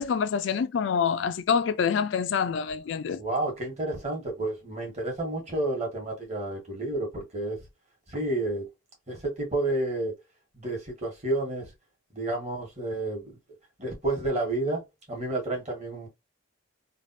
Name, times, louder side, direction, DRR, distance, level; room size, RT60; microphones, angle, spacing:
voice 1, 0.0-3.2, left 6 dB, 60° left, 0.3 m, -26 dB
voice 2, 3.2-7.6 8.1-8.6 9.1-10.1 10.6-11.7 12.1-13.4 13.8-16.1, right 2 dB, 35° right, 1.4 m, -30 dB
3.3 x 2.3 x 2.6 m
head